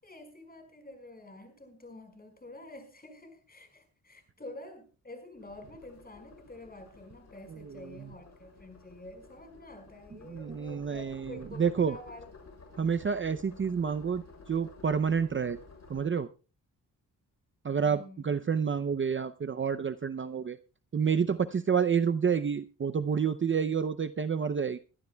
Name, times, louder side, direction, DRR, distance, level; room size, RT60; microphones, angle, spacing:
voice 1, 0.0-12.3 12.8-12.9 17.7-18.3, left 2 dB, 25° left, 6 dB, 5.3 m, -48 dB
sound 1, 5.4-16.1, left 3 dB, 50° left, 6.0 m, -53 dB
voice 2, 7.5-8.1 10.3-12.0 12.8-15.6 15.9-16.3 17.6-20.6 20.9-24.8, right 6 dB, 35° right, 11 dB, 0.6 m, -29 dB
22.5 x 12.0 x 2.3 m, 0.34 s
cardioid pair, 80°, 35 cm